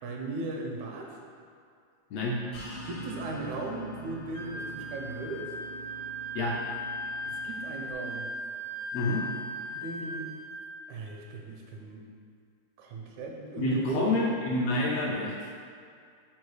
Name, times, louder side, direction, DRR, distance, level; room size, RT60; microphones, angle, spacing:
voice 1, 0.0-1.2 2.9-5.5 7.3-8.3 9.7-10.3 10.9-12.0 12.8-14.2, right 2 dB, 85° right, 0 dB, 2.1 m, -37 dB
sound 1, 2.5-7.9, equal, 60° left, 0.8 m, -44 dB
Wind instrument woodwind instrument, 4.3-10.6, equal, 50° right, 0.7 m, -38 dB
voice 2, 8.9-9.2 13.6-15.5, left 2 dB, 75° left, -3 dB, 1.6 m, -28 dB
5.3 x 4.3 x 4.8 m, 2.3 s
omnidirectional pair, 3.4 m